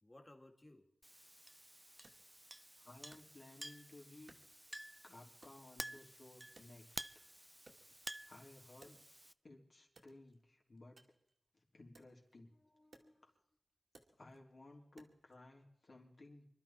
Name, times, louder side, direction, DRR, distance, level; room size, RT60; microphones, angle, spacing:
voice 1, 0.0-0.9 5.2-5.5 12.5-13.3, left 1 dB, 30° left, 3 dB, 2.8 m, -63 dB
Chink clink, 1.0-9.3, right 1 dB, 10° right, 0.5 m, -52 dB
Wood, 2.0-3.8 4.3-5.0 5.4-7.2 7.5-9.5 9.9-15.4, right 2 dB, 65° right, 2.3 m, -67 dB
voice 2, 2.8-4.4 5.0-7.2 8.3-9.0 9.4-11.0 11.5-12.5 14.2-16.5, left 2 dB, 60° left, -1 dB, 3.7 m, -58 dB
25.5 x 12.0 x 4.5 m, 0.74 s
wide cardioid pair, 60°, 0 cm